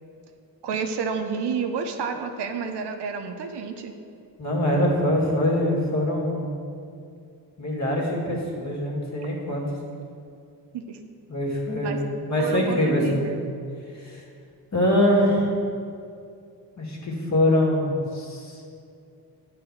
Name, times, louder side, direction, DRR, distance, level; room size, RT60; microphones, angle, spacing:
voice 1, 0.6-3.9 10.7-11.0 11.8-12.0 12.4-13.5, right 5 dB, 75° right, 6 dB, 0.8 m, -30 dB
voice 2, 4.4-6.5 7.6-9.6 11.3-12.0 12.3-13.3 14.0-14.2 14.7-15.5 16.8-18.6, left 1 dB, 40° left, -2 dB, 2.1 m, -23 dB
9.0 x 4.4 x 6.5 m, 2.4 s
cardioid pair, 85°, 41 cm